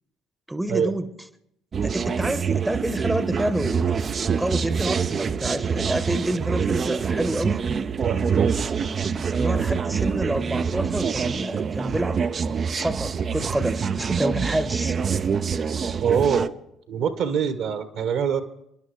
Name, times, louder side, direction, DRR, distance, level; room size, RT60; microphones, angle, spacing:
voice 1, 0.5-1.1 1.8-3.9 4.4-7.7 9.3-12.2 12.7-15.0, right 1 dB, 10° right, 13 dB, 1.0 m, -28 dB
sound 1, 1.7-16.5, right 6 dB, 40° right, 0.6 m, -25 dB
voice 2, 8.0-8.6 16.0-16.5 16.9-18.4, right 7 dB, 60° right, 10 dB, 1.3 m, -24 dB
30.0 x 11.0 x 3.2 m, 0.80 s
figure-of-eight pair, 50°, 0 cm